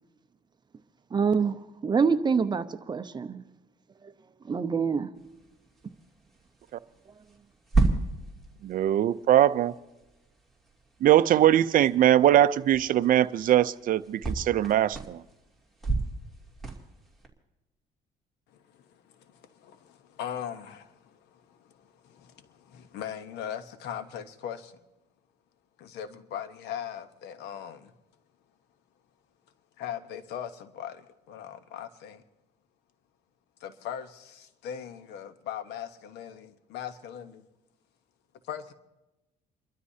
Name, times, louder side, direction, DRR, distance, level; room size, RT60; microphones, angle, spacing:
voice 1, 1.1-3.4 4.0-4.1 4.4-5.1, right 5 dB, 25° right, 10 dB, 0.8 m, -26 dB
sound 1, 5.1-17.3, right 3 dB, ahead, 2.7 m, -34 dB
voice 2, 8.6-9.7 11.0-15.2, right 12 dB, 55° right, 15 dB, 0.5 m, -21 dB
voice 3, 18.7-24.8 25.8-27.9 29.8-32.2 33.6-37.4 38.5-38.7, left 9 dB, 80° left, 10 dB, 1.1 m, -40 dB
30.0 x 13.0 x 2.8 m, 1.0 s
cardioid pair, 110°, 17 cm